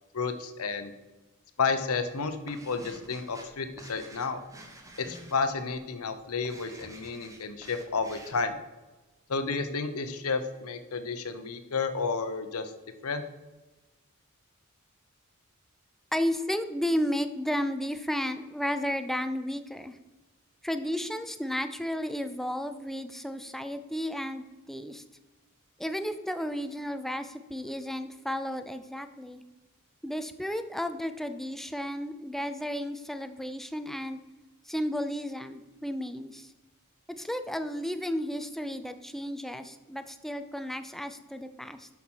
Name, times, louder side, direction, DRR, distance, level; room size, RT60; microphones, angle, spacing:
voice 1, 0.1-0.9 1.6-4.4 5.0-8.6 9.3-12.7 13.0-13.2, left 4 dB, 85° left, 9 dB, 0.8 m, -31 dB
sound 1, 1.9-8.5, right 1 dB, 15° right, 1.1 m, -51 dB
voice 2, 16.1-20.0 20.6-25.0 25.8-29.4 30.0-34.2 34.7-36.5 37.2-41.9, equal, ahead, 9 dB, 0.5 m, -33 dB
7.1 x 6.0 x 6.2 m, 1.1 s
head